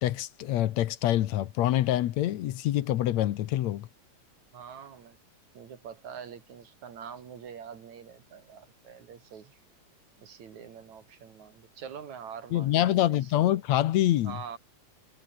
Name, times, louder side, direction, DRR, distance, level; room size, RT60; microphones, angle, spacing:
voice 1, 0.0-3.9 12.5-14.4, left 13 dB, 70° left, 2.2 m, -26 dB
voice 2, 4.5-5.2 5.5-9.6 10.2-13.3 14.2-14.6, right 7 dB, 75° right, 3.9 m, -45 dB
omnidirectional pair, 3.3 m